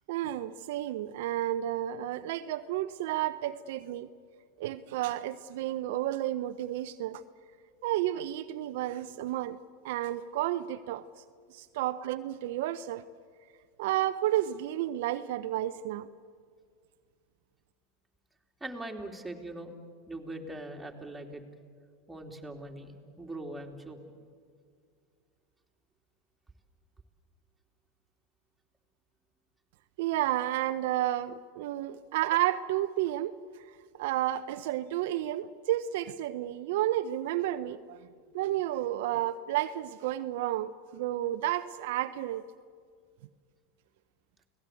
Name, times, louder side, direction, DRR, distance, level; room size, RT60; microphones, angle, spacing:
voice 1, 0.1-4.1 4.6-7.2 7.8-9.6 9.8-11.0 11.5-13.0 13.8-16.1 30.0-33.3 33.9-38.0 38.3-42.4, right 13 dB, 70° right, 10 dB, 0.7 m, -31 dB
voice 2, 18.6-19.7 20.1-21.4 22.1-24.0, right 1 dB, 5° right, 2 dB, 3.2 m, -41 dB
30.0 x 18.5 x 8.5 m, 2.1 s
hypercardioid pair, 100°, 0 cm